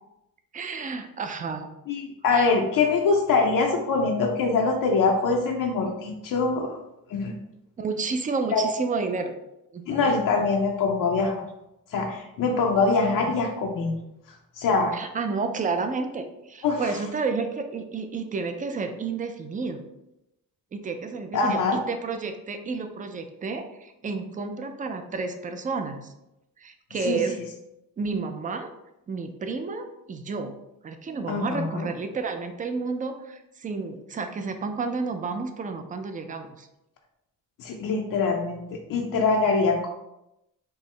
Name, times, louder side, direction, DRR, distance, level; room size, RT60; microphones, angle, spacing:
voice 1, 0.5-1.7 2.3-2.6 7.8-9.4 9.7-10.2 14.9-19.8 20.7-26.1 26.6-27.4 28.0-28.7 29.1-30.5 30.8-36.7, right 4 dB, 25° right, 7 dB, 0.3 m, -31 dB
voice 2, 1.9-6.7 7.1-7.3 8.5-8.6 9.9-11.4 11.9-14.0 14.6-14.9 16.6-16.8 21.3-21.8 27.0-27.2 31.3-31.9 37.6-39.9, left 4 dB, 65° left, 2 dB, 0.5 m, -23 dB
4.4 x 2.0 x 3.2 m, 0.89 s
cardioid pair, 105°, 35 cm